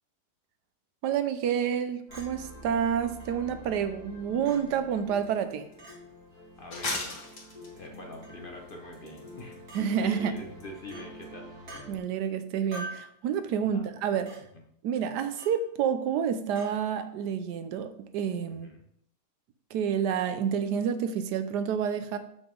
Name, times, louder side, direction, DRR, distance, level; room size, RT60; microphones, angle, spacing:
voice 1, 1.0-5.7 9.7-10.4 11.9-14.4 14.8-18.7 19.7-22.2, right 8 dB, 90° right, 10 dB, 1.3 m, -29 dB
sound 1, 2.1-12.0, left 2 dB, 65° left, 2.4 m, -48 dB
Chink clink, 2.1-2.3 3.2-3.3 4.4-4.6 5.8-5.9 6.9-7.0 8.2-8.4 9.7-9.8 10.9-11.1 11.7-11.8 12.7-13.1 14.3-14.4 15.4-15.6 16.6-16.7, right 1 dB, 70° right, 2.6 m, -43 dB
sound 2, 5.2-5.3 5.7-5.8 6.7-8.2 8.7-9.7 10.0-10.1 10.4-10.6 10.9-11.0 11.2-11.3, left 2 dB, 80° left, 2.2 m, -36 dB
voice 2, 6.6-7.1 7.7-9.6 10.0-11.5 13.6-13.8 14.5-14.6 18.5-18.8, left 1 dB, 40° left, 1 dB, 0.9 m, -44 dB
7.1 x 5.8 x 3.7 m, 0.71 s
omnidirectional pair, 1.7 m